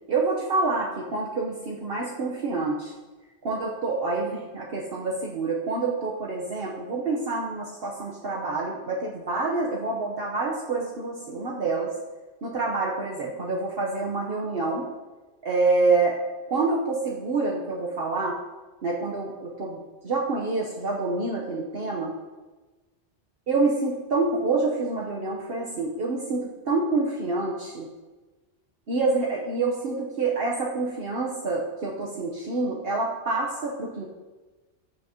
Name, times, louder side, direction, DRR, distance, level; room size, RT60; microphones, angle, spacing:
voice 1, 0.1-2.9 3.4-11.9 12.4-14.9 15.4-16.2 16.5-18.4 18.8-22.1 23.5-27.9 28.9-34.1, right 3 dB, 55° right, -3 dB, 1.2 m, -27 dB
14.0 x 6.2 x 2.9 m, 1.2 s
omnidirectional pair, 1.2 m